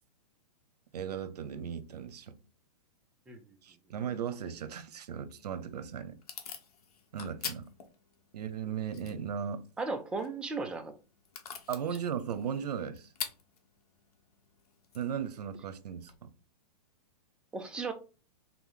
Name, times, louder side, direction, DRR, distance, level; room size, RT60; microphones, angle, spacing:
voice 1, 0.9-2.4 3.6-6.2 7.1-7.7 8.3-9.6 11.7-13.1 14.9-16.1, right 8 dB, 80° right, 0.7 m, -37 dB
Packing tape duct tape / Tearing, 5.4-16.2, left 7 dB, 70° left, 1.1 m, -47 dB
voice 2, 9.8-10.9 17.5-17.9, right 3 dB, 5° right, 0.3 m, -35 dB
3.8 x 3.0 x 3.8 m
hypercardioid pair, 145°, 20 cm